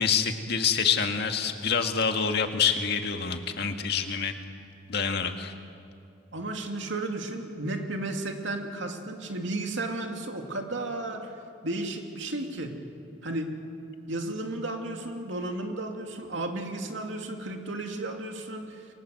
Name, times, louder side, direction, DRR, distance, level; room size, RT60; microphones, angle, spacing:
voice 1, 0.0-4.3 4.9-5.5, left 6 dB, 55° left, 5 dB, 1.9 m, -26 dB
voice 2, 6.3-11.3 11.6-12.8 13.2-13.5 14.1-18.9, right 2 dB, 70° right, 3 dB, 2.6 m, -33 dB
29.0 x 23.0 x 7.8 m, 2.5 s
head